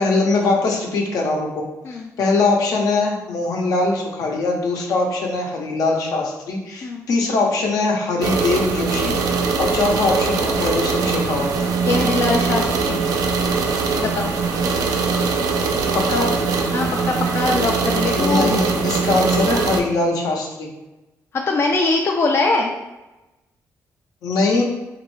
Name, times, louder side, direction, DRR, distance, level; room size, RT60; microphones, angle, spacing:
voice 1, 0.0-1.6 1.9-11.5 15.9-16.3 18.1-20.7 24.2-24.6, left 3 dB, 75° left, 0 dB, 0.7 m, -21 dB
sound 1, 8.2-19.8, right 4 dB, 80° right, 0.4 m, -21 dB
voice 2, 11.8-13.0 14.0-14.3 16.7-18.6 21.3-22.7, left 3 dB, 40° left, 1 dB, 0.4 m, -22 dB
3.0 x 2.5 x 3.0 m, 1.0 s
cardioid pair, 90°, 6 cm